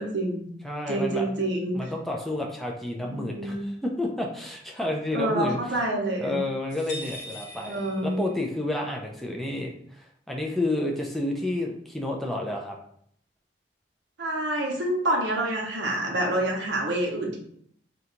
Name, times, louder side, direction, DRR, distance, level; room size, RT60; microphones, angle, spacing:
voice 1, 0.0-0.5 0.9-1.8 3.0-3.6 5.1-6.4 7.6-8.2 14.2-17.4, right 1 dB, 75° right, -1 dB, 0.6 m, -27 dB
voice 2, 0.6-1.3 1.7-5.8 6.2-12.8, left 2 dB, ahead, 0 dB, 0.3 m, -30 dB
sound 1, 6.7-8.6, equal, 85° left, 0.8 m, -41 dB
2.8 x 2.2 x 3.7 m, 0.66 s
head